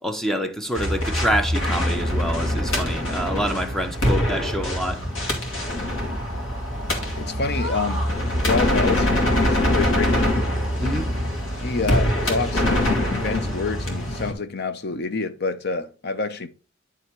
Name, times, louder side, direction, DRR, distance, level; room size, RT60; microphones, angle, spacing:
voice 1, 0.0-5.0 10.8-11.1, equal, ahead, 0.8 m, -26 dB
sound 1, 0.7-14.3, left 1 dB, 85° left, 2.2 m, -24 dB
voice 2, 7.1-8.0 8.4-10.4 11.6-16.5, left 4 dB, 55° left, 0.7 m, -27 dB
9.8 x 3.5 x 4.5 m
head